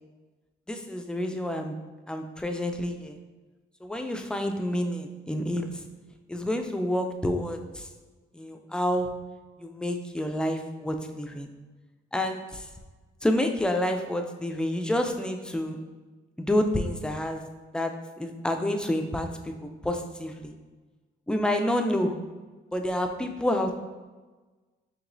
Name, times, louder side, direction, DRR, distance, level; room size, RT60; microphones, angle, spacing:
voice 1, 0.7-1.8 2.1-3.2 3.8-5.8 6.3-7.9 8.3-9.1 9.6-11.5 12.1-12.7 13.2-15.8 16.4-17.4 17.7-20.5 21.3-22.2 22.7-23.7, left 1 dB, 5° left, 5 dB, 0.4 m, -28 dB
4.8 x 3.0 x 2.6 m, 1.3 s
cardioid pair, 90°, 20 cm